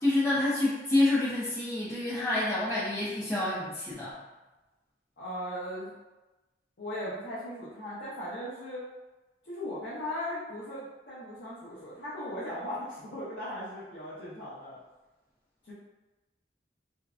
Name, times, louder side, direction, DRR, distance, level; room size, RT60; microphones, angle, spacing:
voice 1, 0.0-4.1, left 2 dB, 15° left, -11 dB, 0.4 m, -28 dB
voice 2, 5.2-5.9 6.8-8.9 9.4-14.8 15.6-15.7, left 1 dB, 60° left, -11 dB, 0.6 m, -38 dB
2.6 x 2.1 x 2.3 m, 1.1 s
head